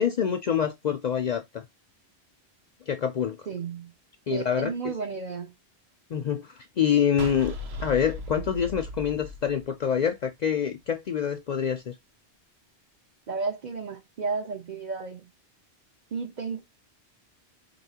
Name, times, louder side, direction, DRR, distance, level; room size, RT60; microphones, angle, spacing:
voice 1, 0.0-1.6 2.9-3.5 4.3-4.7 6.1-11.9, left 8 dB, 55° left, 0.5 m, -26 dB
voice 2, 3.5-3.9 4.3-5.5 13.3-15.3 16.1-16.6, right 4 dB, 50° right, 0.8 m, -33 dB
sound 1, 7.2-10.4, left 1 dB, 75° right, 1.0 m, -37 dB
4.6 x 2.7 x 2.7 m
omnidirectional pair, 1.1 m